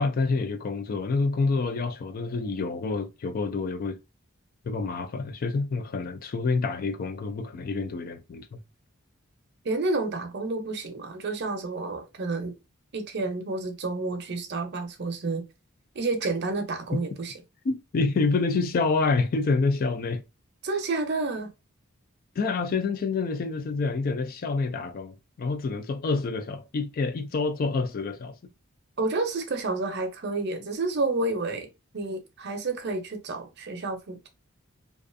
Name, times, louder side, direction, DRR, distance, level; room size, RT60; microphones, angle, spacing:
voice 1, 0.0-4.0 4.7-8.5 16.9-17.0 17.7-20.2 22.4-28.4, left 4 dB, 45° left, 0.3 m, -27 dB
voice 2, 9.6-12.5 12.9-15.4 15.9-17.4 20.6-21.5 29.0-31.7 31.9-34.3, right 3 dB, 55° right, 0.6 m, -30 dB
2.5 x 2.3 x 2.5 m
head